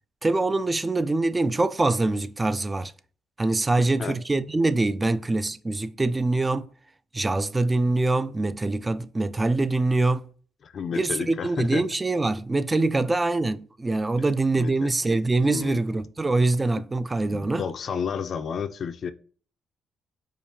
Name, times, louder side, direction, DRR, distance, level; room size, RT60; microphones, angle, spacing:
voice 1, 0.2-2.9 3.4-6.7 7.1-10.2 11.0-17.6, right 2 dB, 20° right, 0.3 m, -24 dB
voice 2, 10.6-11.8 14.6-14.9 15.4-15.8 17.3-19.1, left 6 dB, 55° left, 0.4 m, -31 dB
5.0 x 2.4 x 2.7 m
cardioid pair, 90°, 0 cm